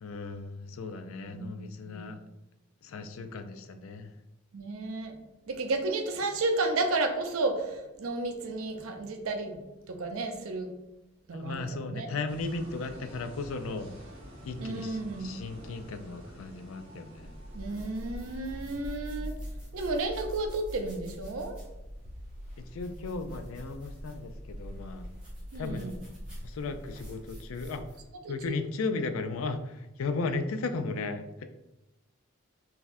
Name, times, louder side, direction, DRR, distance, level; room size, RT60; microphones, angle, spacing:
voice 1, 0.0-2.2 2.8-4.1 11.3-13.9 14.4-17.3 18.6-18.8 22.7-25.1 25.5-26.0 26.4-27.8 28.3-31.4, left 3 dB, 80° left, 9 dB, 0.4 m, -36 dB
voice 2, 1.3-2.1 4.5-5.1 5.5-9.6 9.9-10.7 11.3-12.1 14.6-15.3 17.5-19.4 19.7-21.6 25.5-26.0 28.2-28.6, right 2 dB, 85° right, 5 dB, 0.6 m, -32 dB
sound 1, 12.3-19.7, equal, 30° right, 0.8 m, -49 dB
sound 2, 17.1-28.1, equal, 5° right, 1.4 m, -43 dB
3.9 x 2.8 x 2.5 m, 0.96 s
head